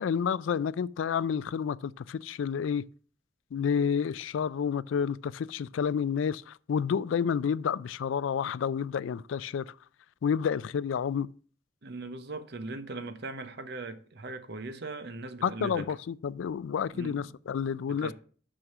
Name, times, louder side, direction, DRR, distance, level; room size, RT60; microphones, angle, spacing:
voice 1, 0.0-2.8 3.5-9.7 10.2-11.3 15.4-18.1, left 7 dB, 75° left, 0.3 m, -30 dB
voice 2, 11.8-15.9 16.9-17.2 17.9-18.1, right 3 dB, 55° right, 0.8 m, -39 dB
6.3 x 6.0 x 6.0 m
head